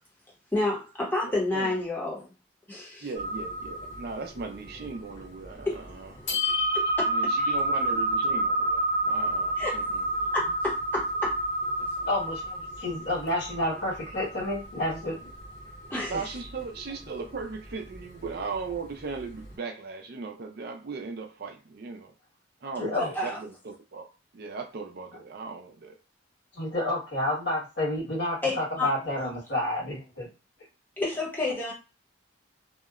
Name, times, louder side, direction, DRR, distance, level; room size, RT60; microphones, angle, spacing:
voice 1, 0.5-2.3 2.7-3.1 5.7-5.8 6.7-7.5 9.6-9.8 10.3-11.4 15.9-16.2 22.9-23.4 28.4-28.9 31.0-31.7, left 2 dB, 10° left, 0.8 m, -30 dB
voice 2, 1.2-1.7 3.0-6.1 7.0-10.1 11.8-12.1 16.1-22.1 22.6-25.9, right 4 dB, 50° right, 0.4 m, -38 dB
sound 1, 3.1-19.5, right 1 dB, 80° left, 1.4 m, -30 dB
voice 3, 12.1-15.3 22.7-23.1 26.5-30.3, left 1 dB, 65° left, 1.4 m, -30 dB
2.7 x 2.1 x 2.4 m
head